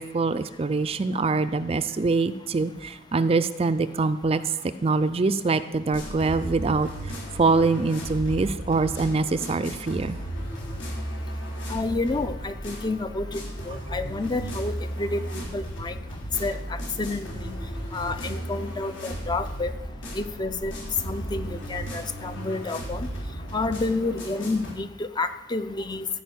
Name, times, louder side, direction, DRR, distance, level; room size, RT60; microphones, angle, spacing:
voice 1, 0.0-10.2, right 3 dB, 30° right, 12 dB, 0.4 m, -24 dB
sound 1, 5.9-24.7, right 1 dB, 75° left, 3.5 m, -35 dB
voice 2, 11.7-16.0 16.4-17.5 17.9-19.7 20.1-20.7 21.0-23.1 23.5-26.1, left 3 dB, 25° left, 10 dB, 0.5 m, -30 dB
15.0 x 5.0 x 8.0 m, 1.0 s
head